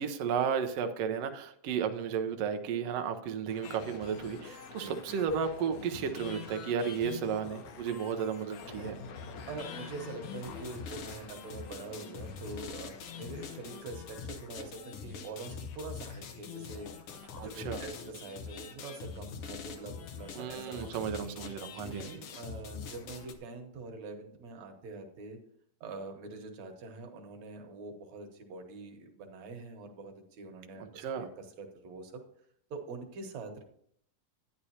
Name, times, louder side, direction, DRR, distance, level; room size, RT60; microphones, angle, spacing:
voice 1, 0.0-8.9 17.4-17.8 20.3-22.0 30.8-31.2, right 7 dB, 85° right, 6 dB, 1.4 m, -33 dB
sound 1, 3.5-13.8, left 6 dB, 65° left, 1.9 m, -51 dB
sound 2, 3.6-23.3, left 6 dB, 80° left, 1.2 m, -45 dB
voice 2, 9.5-17.1 17.4-21.0 21.8-25.4 25.8-32.2 32.7-33.6, right 3 dB, 65° right, 3 dB, 2.2 m, -44 dB
11.0 x 9.9 x 2.8 m, 0.67 s
omnidirectional pair, 3.8 m